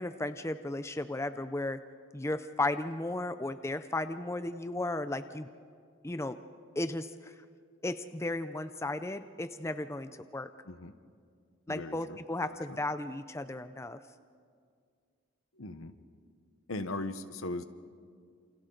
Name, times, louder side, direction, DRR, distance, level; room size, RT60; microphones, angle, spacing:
voice 1, 0.0-1.8 2.1-5.5 6.0-6.4 6.8-7.3 7.8-10.5 11.7-14.0, left 2 dB, 15° left, 11 dB, 0.5 m, -35 dB
voice 2, 11.7-12.8 15.5-15.9 16.7-17.6, left 2 dB, 75° left, 10 dB, 1.1 m, -39 dB
28.0 x 28.0 x 3.9 m, 2.1 s
head